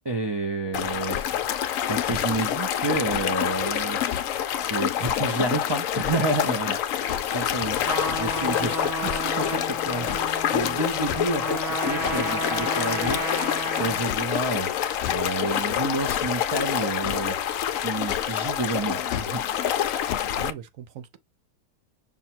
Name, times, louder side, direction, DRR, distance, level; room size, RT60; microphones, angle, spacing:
voice 1, 0.0-1.2 1.9-4.0 4.7-6.8 7.2-7.8 8.1-10.2 10.5-13.2 13.8-14.7 15.1-17.4 17.8-19.4, right 2 dB, 35° right, 0.4 m, -29 dB
sound 1, 0.7-20.5, left 10 dB, 70° left, 0.9 m, -27 dB
sound 2, 1.1-1.3 2.0-2.3 3.1-3.3 4.1-4.3 5.0-5.2 6.0-6.2 7.1-7.3 8.0-8.3 9.0-9.4 10.0-10.3 11.1-11.3 12.0-12.2 13.0-13.3 14.0-14.3 15.0-15.2 16.0-16.3 17.0-17.2 18.1-18.3 19.0-19.4 20.1-20.2, left 9 dB, 85° left, 0.5 m, -33 dB
voice 2, 7.6-8.0 8.5-8.7 20.4-21.2, right 10 dB, 65° right, 1.0 m, -41 dB
Trumpet, 7.8-14.1, right 1 dB, ahead, 1.0 m, -32 dB
5.6 x 2.2 x 4.3 m
omnidirectional pair, 1.6 m